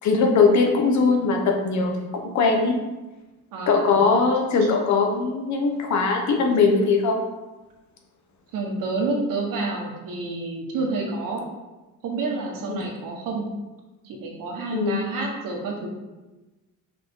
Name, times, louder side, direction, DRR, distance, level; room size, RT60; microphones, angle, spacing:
voice 1, 0.0-2.8 3.7-7.2 12.7-12.8 14.7-15.0, left 4 dB, 60° left, 2 dB, 1.1 m, -20 dB
voice 2, 3.5-4.0 4.6-4.7 8.5-11.4 12.0-13.5 14.0-15.9, right 3 dB, 80° right, 0 dB, 1.6 m, -29 dB
6.1 x 5.1 x 3.8 m, 1.1 s
cardioid pair, 170°, 32 cm